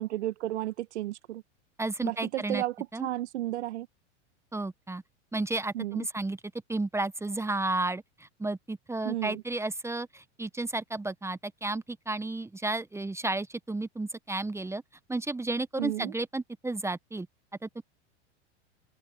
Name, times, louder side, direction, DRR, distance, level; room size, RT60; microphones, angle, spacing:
voice 1, 0.0-1.4 2.0-2.7 3.0-3.9 5.7-6.1 9.0-9.4 15.8-16.1, right 15 dB, 70° right, 1.5 m, -32 dB
voice 2, 1.8-2.6 2.9-3.1 4.5-5.0 5.3-6.4 6.7-14.8 15.1-17.3 17.6-17.8, right 2 dB, 5° right, 1.1 m, -32 dB
open air
hypercardioid pair, 95°, 35 cm